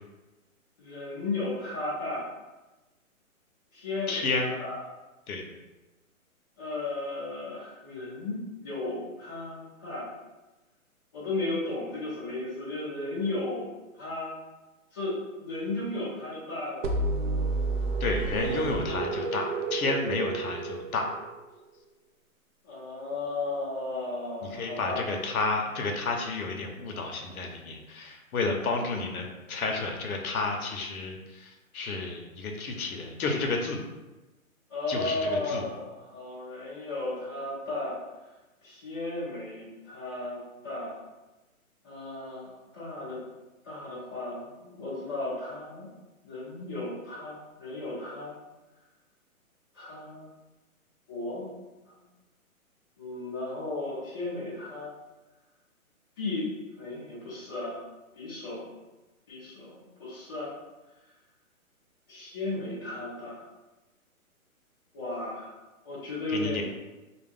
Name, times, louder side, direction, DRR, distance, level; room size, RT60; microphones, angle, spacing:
voice 1, 0.8-2.2 3.7-4.8 6.6-10.1 11.1-13.7 14.0-14.3 14.9-16.9 22.6-25.1 34.7-38.0 38.6-41.0 41.8-43.2 43.6-45.9 46.2-48.4 49.7-50.3 51.1-51.5 53.0-54.9 56.2-56.5 56.8-57.8 58.1-58.7 59.3-60.5 62.1-63.5 64.9-65.6 65.8-66.6, left 2 dB, 15° left, -12 dB, 0.6 m, -35 dB
voice 2, 4.1-4.5 5.3-5.4 18.0-21.1 24.6-31.5 31.7-33.8 34.9-35.2 35.5-35.6 66.3-66.6, left 3 dB, 80° left, 2 dB, 0.6 m, -31 dB
sound 1, 16.8-21.6, right 3 dB, 60° right, 0.5 m, -30 dB
2.3 x 2.1 x 3.3 m, 1.1 s
hypercardioid pair, 165°, 43 cm